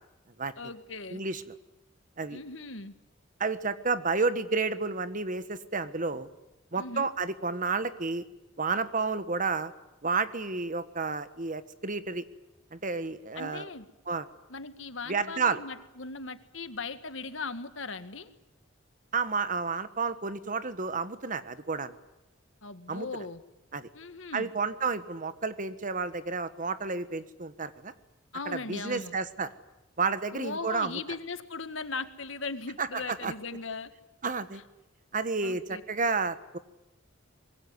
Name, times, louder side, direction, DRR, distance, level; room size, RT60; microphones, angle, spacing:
voice 1, 0.6-1.2 2.3-2.9 6.8-7.1 13.4-13.9 14.5-18.3 22.6-23.4 23.9-24.5 28.3-29.2 30.3-33.9 34.5-34.6 35.4-35.8, left 4 dB, 70° left, 10 dB, 1.9 m, -38 dB
voice 2, 1.1-1.4 2.2-2.4 3.4-6.3 6.7-8.2 8.6-9.7 10.0-12.2 12.7-13.7 14.1-14.3 15.1-15.6 19.1-22.0 22.9-23.1 23.7-23.9 24.3-27.9 28.5-29.5 30.0-31.0 32.8-33.3 34.2-34.6 35.1-36.6, right 4 dB, 40° right, 12 dB, 1.4 m, -31 dB
24.5 x 22.0 x 9.6 m, 0.98 s
head